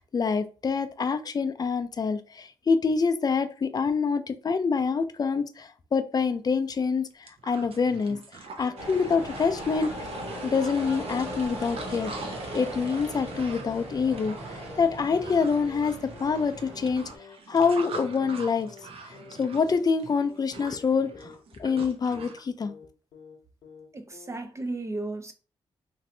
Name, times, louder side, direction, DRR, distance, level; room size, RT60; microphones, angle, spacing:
voice 1, 0.0-8.2 8.6-9.9 10.4-14.4 14.8-17.1 17.5-18.7 19.1-21.3 21.6-22.7, left 5 dB, 40° left, 0.4 m, -26 dB
sound 1, 6.7-6.8 7.1-22.4, right 4 dB, 65° right, 0.6 m, -44 dB
sound 2, 8.6-8.9 9.1-9.4 9.6-9.9 10.1-10.4 10.6-10.9 11.1-11.4 11.6-11.9 12.1-12.4 12.6-12.9 13.1-13.4 13.6-13.9 14.1-14.4 14.6-14.9 15.1-15.4 15.6-15.9 16.1-16.4 16.6-16.9 17.1-17.4 17.6-17.9 18.1-18.4 18.6-18.9 19.1-19.4 19.6-19.9 20.1-20.4 20.6-20.9 21.1-21.4 21.6-21.9 22.1-22.4 22.6-22.9 23.1-23.4 23.6-23.9 24.1-24.4, left 6 dB, 80° left, 0.8 m, -49 dB
sound 3, 8.8-17.2, right 1 dB, 80° right, 1.0 m, -38 dB
voice 2, 23.9-25.3, right 2 dB, 30° right, 0.5 m, -34 dB
3.1 x 2.6 x 2.7 m
cardioid pair, 65°, 10 cm